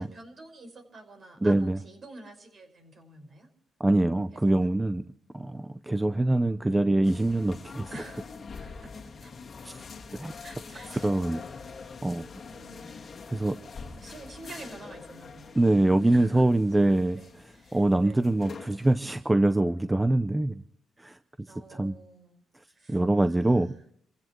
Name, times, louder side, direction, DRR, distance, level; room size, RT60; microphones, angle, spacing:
voice 1, 0.0-3.5 4.3-4.7 7.9-8.3 8.6-9.3 10.4-11.8 12.4-13.1 13.8-16.5 16.9-18.4 21.5-22.4 22.7-23.8, right 2 dB, 45° right, 5 dB, 5.4 m, -49 dB
voice 2, 1.4-1.8 3.8-5.0 5.3-7.9 9.6-9.8 10.2-10.3 11.0-11.4 12.0-12.3 13.3-13.6 15.6-17.2 17.7-20.6 21.0-21.2 21.7-21.9 22.9-23.7, right 2 dB, 10° right, 11 dB, 0.6 m, -24 dB
sound 1, 7.0-19.1, left 5 dB, 45° left, 1.8 m, -45 dB
28.5 x 15.5 x 3.1 m, 0.65 s
cardioid pair, 90°, 0 cm